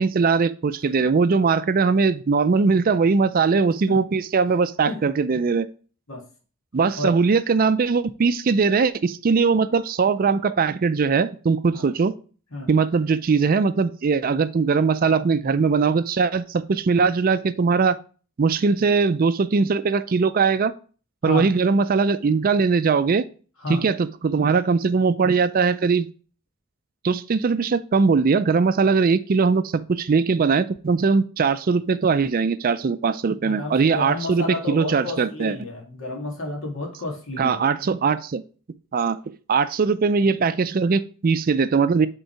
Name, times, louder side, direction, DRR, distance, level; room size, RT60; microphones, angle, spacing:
voice 1, 0.0-5.7 6.7-12.1 12.7-18.0 18.4-20.7 21.2-23.2 23.7-26.1 27.0-35.6 37.4-38.4 38.9-39.2 39.5-42.1, right 5 dB, 40° right, 13 dB, 0.4 m, -20 dB
voice 2, 33.4-37.6, left 2 dB, 65° left, 0 dB, 2.0 m, -31 dB
8.0 x 3.8 x 4.5 m, 0.39 s
head